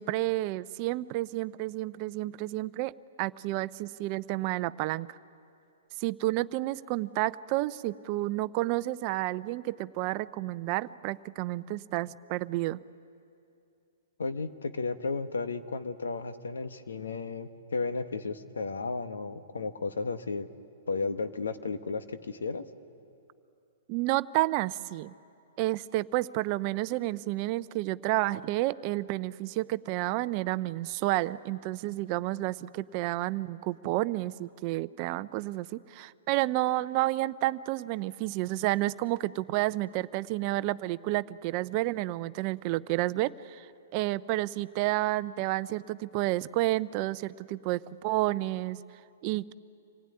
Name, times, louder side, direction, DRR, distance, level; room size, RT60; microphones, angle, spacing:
voice 1, 0.0-5.2 6.0-12.8 23.9-25.1 25.6-43.7 43.9-48.8 49.2-49.5, right 17 dB, 40° right, 15 dB, 0.5 m, -30 dB
voice 2, 14.2-20.5 20.9-22.6, left 4 dB, 90° left, 10 dB, 1.3 m, -33 dB
26.0 x 16.5 x 9.8 m, 2.6 s
hypercardioid pair, 140°, 0 cm